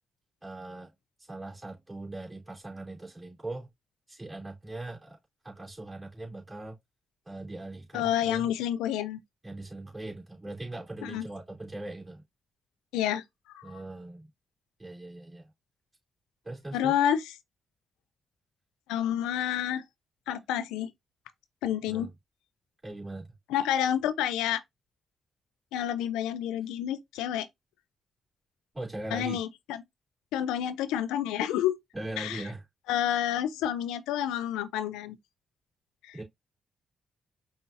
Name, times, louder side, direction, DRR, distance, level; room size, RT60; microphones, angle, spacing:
voice 1, 0.4-0.9 1.2-3.7 4.1-5.2 5.4-6.8 7.2-8.5 9.4-12.2 13.6-14.3 14.8-15.5 16.4-16.9 21.9-22.1 22.8-23.3 28.7-29.4 31.9-32.6 36.1-36.2, right 2 dB, 20° right, 3.3 m, -40 dB
voice 2, 7.9-9.2 11.0-11.2 12.9-13.2 13.5-13.7 16.7-17.4 18.9-19.8 20.3-20.9 21.6-22.1 23.5-24.6 25.7-27.5 29.1-29.8 30.3-31.8 32.2-32.5 32.9-35.2 36.0-36.2, left 10 dB, 85° left, 0.3 m, -29 dB
5.6 x 2.5 x 2.6 m
hypercardioid pair, 40°, 0 cm